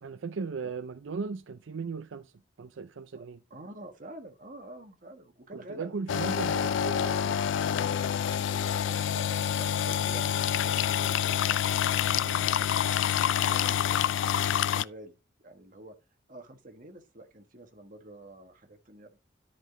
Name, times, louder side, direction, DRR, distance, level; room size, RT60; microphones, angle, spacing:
voice 1, 0.0-2.3 2.6-3.4 5.5-7.4 12.2-12.5, right 5 dB, 85° right, 0.5 m, -37 dB
voice 2, 3.5-6.6 8.8-11.6 12.1-16.0 16.3-19.2, right 1 dB, 45° right, 1.5 m, -48 dB
sound 1, 6.1-14.8, left 9 dB, 80° left, 0.3 m, -27 dB
11.0 x 5.1 x 3.8 m
head